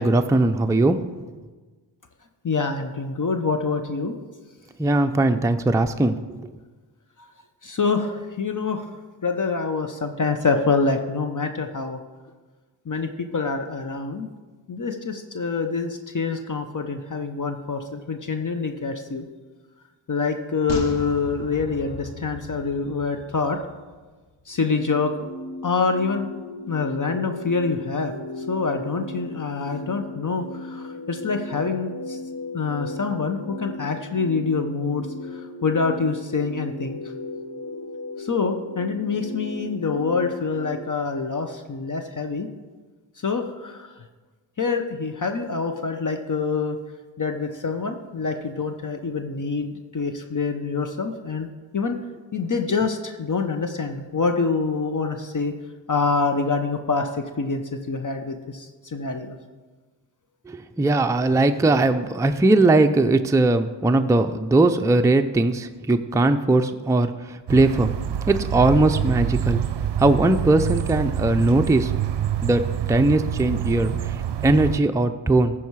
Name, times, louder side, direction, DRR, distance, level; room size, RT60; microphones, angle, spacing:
voice 1, 0.0-1.4 4.8-6.2 60.5-67.9 68.3-69.6 70.0-71.9 72.4-72.6 72.9-74.2 74.4-75.5, right 2 dB, 5° right, 7 dB, 0.5 m, -20 dB
voice 2, 2.4-4.1 7.6-8.9 9.2-12.0 12.9-14.3 14.7-19.3 20.1-23.6 24.5-25.3 25.6-26.3 26.7-28.1 28.5-32.2 32.5-35.1 35.3-37.0 38.2-42.5 43.2-44.0 44.6-46.8 47.2-51.5 51.7-52.0 52.3-55.5 55.9-59.4, left 4 dB, 40° left, 6 dB, 0.9 m, -26 dB
sound 1, 20.7-24.1 24.4-24.5, left 3 dB, 60° left, 1.3 m, -36 dB
sound 2, 24.5-40.7, left 2 dB, 85° left, 1.3 m, -36 dB
sound 3, 67.5-74.8, right 10 dB, 60° right, 0.6 m, -26 dB
14.5 x 4.8 x 4.7 m, 1.3 s
cardioid pair, 40°, 48 cm